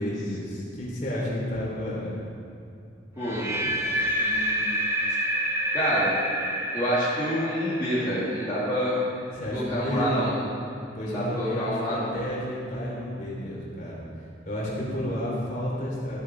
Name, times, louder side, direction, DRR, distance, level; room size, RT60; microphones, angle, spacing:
voice 1, 0.0-2.3 9.3-10.1 10.9-16.2, left 1 dB, 45° left, -5 dB, 3.2 m, -31 dB
voice 2, 3.2-3.7 4.2-4.8 5.7-6.2 6.7-9.0 9.5-10.4 11.0-12.2, equal, 20° left, -10 dB, 2.0 m, -28 dB
sound 1, 3.2-9.2, equal, 15° right, 0.9 m, -28 dB
14.0 x 8.6 x 4.5 m, 2.6 s
head